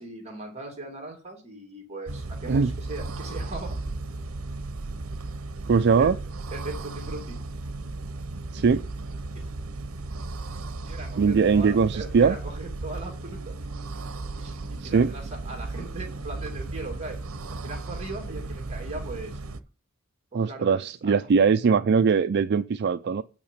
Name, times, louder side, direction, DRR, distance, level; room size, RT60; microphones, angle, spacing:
voice 1, 0.0-3.8 6.0-6.1 6.5-7.4 10.8-13.5 14.4-17.2 17.5-19.4 20.3-21.2, right 2 dB, 30° right, 2.6 m, -39 dB
sound 1, 2.1-19.6, right 2 dB, 80° right, 0.8 m, -35 dB
voice 2, 5.7-6.2 8.5-8.8 11.2-12.3 14.8-15.1 20.3-23.2, right 5 dB, 55° right, 0.4 m, -21 dB
8.7 x 6.0 x 6.6 m
head